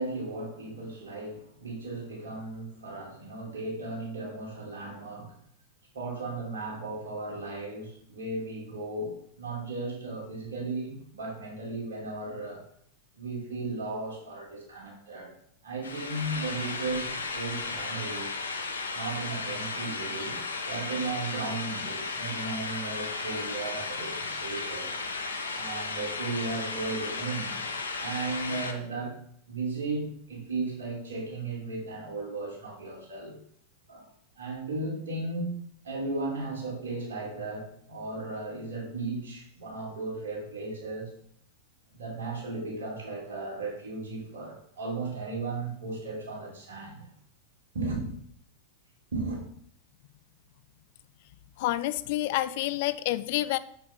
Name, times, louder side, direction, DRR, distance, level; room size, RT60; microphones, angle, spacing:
voice 1, 0.0-5.3 5.9-12.6 13.1-15.3 15.6-18.3 18.9-20.4 20.7-25.0 25.5-27.7 28.0-29.2 29.5-33.3 33.9-34.1 34.4-35.6 35.8-41.1 41.9-47.0 47.7-48.1 49.1-49.4, right 3 dB, 65° right, -4 dB, 3.0 m, -35 dB
sound 1, 15.8-28.7, left 4 dB, 75° left, 0.8 m, -35 dB
voice 2, 51.6-53.6, left 15 dB, 50° left, 16 dB, 0.3 m, -28 dB
7.0 x 5.9 x 3.5 m, 0.67 s
figure-of-eight pair, 90°, 0 cm